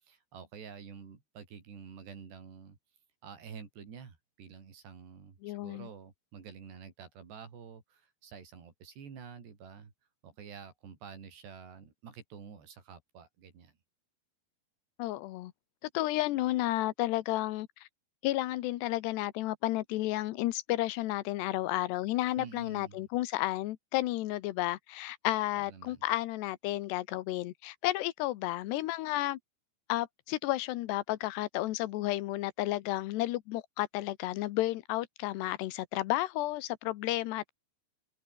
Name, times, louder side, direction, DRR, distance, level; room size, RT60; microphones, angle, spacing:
voice 1, 0.0-2.8 3.2-9.9 10.2-13.7 22.4-23.0 25.5-26.1, right 6 dB, 80° right, 6.6 m, -49 dB
voice 2, 5.4-5.9 15.0-15.5 15.8-17.9 18.2-29.4 29.9-37.5, left 16 dB, 85° left, 3.1 m, -32 dB
omnidirectional pair, 4.8 m